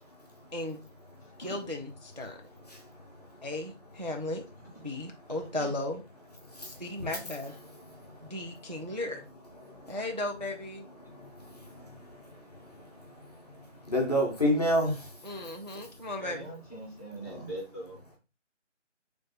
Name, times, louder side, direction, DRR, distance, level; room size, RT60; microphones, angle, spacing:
voice 1, 1.4-2.4 3.4-4.5 4.8-6.0 6.6-7.5 8.2-9.3 9.9-10.9 15.2-16.5, left 1 dB, 40° right, 0.4 m, -36 dB
voice 2, 6.4-7.1 7.9-8.3 9.6-9.9 11.0-15.2 17.3-17.4, equal, 30° left, 0.9 m, -32 dB
voice 3, 16.2-18.2, right 1 dB, 15° left, 1.2 m, -42 dB
3.2 x 3.1 x 3.8 m
figure-of-eight pair, 170°, 37 cm